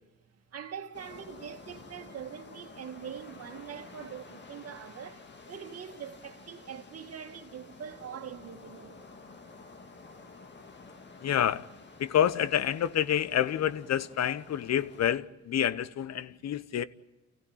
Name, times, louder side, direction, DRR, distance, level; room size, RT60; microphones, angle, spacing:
voice 1, 0.5-9.0 16.3-16.5, right 8 dB, 55° right, 2.2 m, -43 dB
sound 1, 0.9-15.1, left 3 dB, 35° left, 2.1 m, -51 dB
voice 2, 11.2-11.6 12.0-16.8, left 10 dB, 60° left, 1.0 m, -28 dB
29.5 x 15.5 x 9.0 m
cardioid pair, 90°, 30 cm